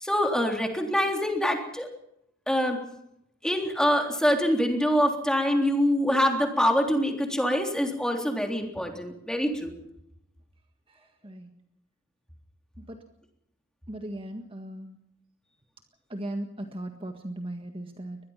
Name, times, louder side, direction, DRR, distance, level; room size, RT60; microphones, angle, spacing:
voice 1, 0.0-1.9 2.5-2.8 3.4-9.7, equal, 5° left, 3 dB, 3.5 m, -25 dB
voice 2, 10.9-11.5 12.8-13.0 13.9-15.0 16.1-18.2, right 1 dB, 25° right, 5 dB, 1.7 m, -38 dB
23.5 x 20.5 x 5.8 m, 0.77 s
head